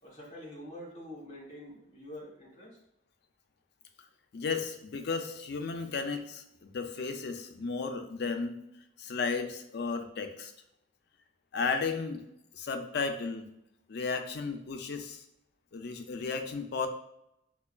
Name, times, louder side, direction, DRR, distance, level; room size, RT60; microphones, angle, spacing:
voice 1, 0.0-2.8, left 1 dB, 40° left, -3 dB, 1.2 m, -46 dB
voice 2, 4.3-8.6 9.0-10.5 11.5-12.2 12.5-13.5 13.9-15.2 15.7-16.9, left 4 dB, 60° left, 6 dB, 0.4 m, -34 dB
5.4 x 2.2 x 2.3 m, 0.81 s
head